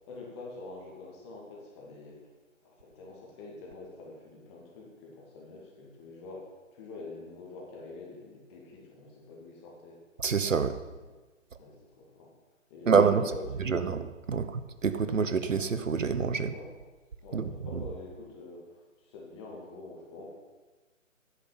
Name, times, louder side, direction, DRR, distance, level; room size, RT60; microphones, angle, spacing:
voice 1, 0.1-2.3 2.6-10.0 11.6-12.3 12.7-12.9 13.2-13.9 14.3-14.5 16.5-16.7 17.2-20.3, left 3 dB, 20° left, -2 dB, 2.4 m, -46 dB
voice 2, 10.2-10.8 12.9-13.2 13.6-16.5 17.3-17.8, right 5 dB, 70° right, 12 dB, 1.1 m, -27 dB
10.5 x 8.2 x 7.4 m, 1.2 s
figure-of-eight pair, 145°, 40 cm